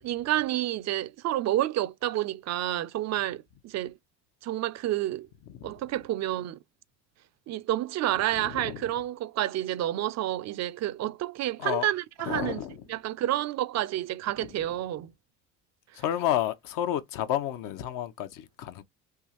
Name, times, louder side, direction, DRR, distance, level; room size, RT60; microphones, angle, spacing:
voice 1, 0.0-4.0 4.4-5.3 5.6-6.6 7.5-12.6 12.9-15.1, right 13 dB, 45° right, 0.5 m, -29 dB
voice 2, 8.4-8.8 11.6-11.9 12.2-12.8 16.0-18.8, left 11 dB, 60° left, 0.8 m, -30 dB
3.5 x 2.4 x 2.9 m
supercardioid pair, 75°, 37 cm